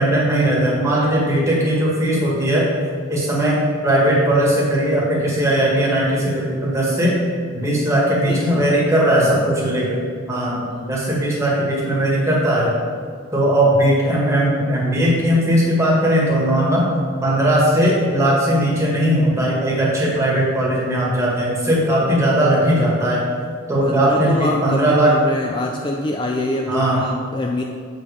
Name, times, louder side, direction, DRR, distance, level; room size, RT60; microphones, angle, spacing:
voice 1, 0.0-2.7 3.1-7.1 7.5-10.0 10.3-12.8 13.3-16.9 17.2-23.2 23.7-25.1 26.7-27.0, right 1 dB, 15° right, -5 dB, 1.7 m, -18 dB
voice 2, 8.3-8.7 9.2-9.4 10.7-10.9 23.8-27.6, left 1 dB, 25° left, 1 dB, 0.4 m, -25 dB
7.5 x 5.2 x 5.0 m, 2.1 s
head